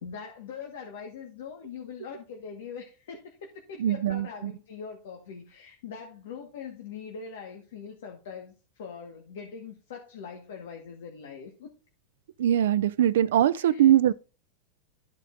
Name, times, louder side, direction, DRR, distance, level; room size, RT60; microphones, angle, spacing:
voice 1, 0.0-11.7 13.5-13.9, left 6 dB, 80° left, 1.5 m, -42 dB
voice 2, 3.8-4.5 12.4-14.1, right 11 dB, 85° right, 0.3 m, -22 dB
13.0 x 5.0 x 2.6 m
supercardioid pair, 160°, 0 cm